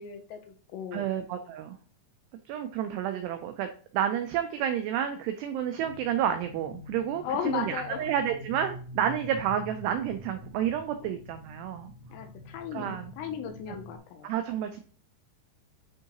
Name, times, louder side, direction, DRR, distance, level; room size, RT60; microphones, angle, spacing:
voice 1, 0.0-1.1 7.2-8.1 11.0-11.2 12.1-14.3, left 7 dB, 80° left, 5 dB, 2.8 m, -36 dB
voice 2, 0.9-1.8 2.5-11.9 12.7-13.1 14.2-14.8, right 9 dB, 90° right, 7 dB, 2.3 m, -30 dB
sound 1, 5.8-14.0, left 2 dB, 65° right, 1.1 m, -46 dB
10.5 x 3.6 x 3.0 m, 0.41 s
omnidirectional pair, 5.5 m